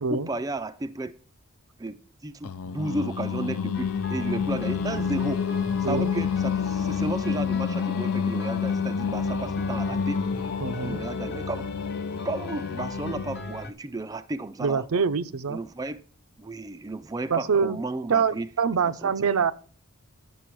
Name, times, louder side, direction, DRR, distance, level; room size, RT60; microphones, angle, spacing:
voice 1, 0.1-1.1 1.8-2.0 2.2-5.4 5.8-10.2 10.8-11.7 12.2-14.9 15.5-16.0 16.4-18.5 18.8-19.1, right 2 dB, 15° right, 0.3 m, -33 dB
Singing, 2.4-13.6, left 6 dB, 80° left, 0.5 m, -29 dB
sound 1, 3.7-13.7, left 2 dB, 50° left, 1.1 m, -39 dB
voice 2, 10.6-11.0 14.6-15.6 17.3-17.8 18.1-19.5, right 5 dB, 75° right, 0.5 m, -25 dB
10.0 x 6.8 x 4.5 m
head